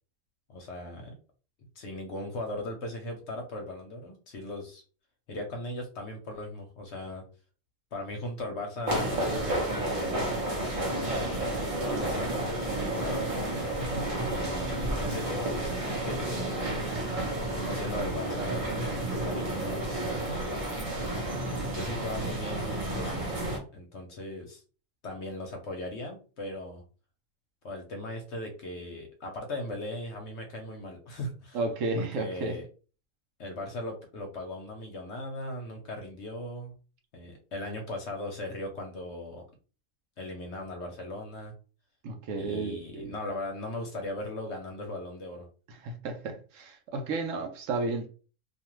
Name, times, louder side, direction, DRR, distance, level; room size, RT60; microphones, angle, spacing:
voice 1, 0.5-1.2 1.8-4.8 5.3-7.2 7.9-11.3 11.6-13.3 14.3-16.7 17.5-19.9 21.0-23.3 23.7-24.6 25.0-26.8 27.6-31.6 32.0-32.7 33.4-36.7 37.1-39.4 40.2-41.5 42.4-45.5, left 1 dB, 60° left, 0.8 m, -38 dB
sound 1, 8.9-23.6, right 1 dB, 30° right, 0.6 m, -31 dB
voice 2, 31.5-32.5 42.0-43.1 45.8-48.1, right 3 dB, 70° right, 0.9 m, -32 dB
2.4 x 2.4 x 3.0 m
omnidirectional pair, 1.5 m